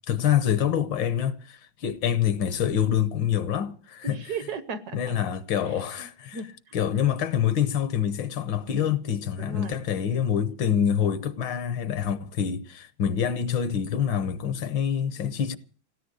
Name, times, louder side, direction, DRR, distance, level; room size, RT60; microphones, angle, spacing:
voice 1, 0.1-4.2 4.9-6.4 6.7-15.6, left 9 dB, 75° left, 1.8 m, -26 dB
voice 2, 4.0-5.1 5.6-6.8 9.4-9.8, right 5 dB, 60° right, 1.3 m, -37 dB
17.0 x 10.5 x 8.1 m
omnidirectional pair, 2.1 m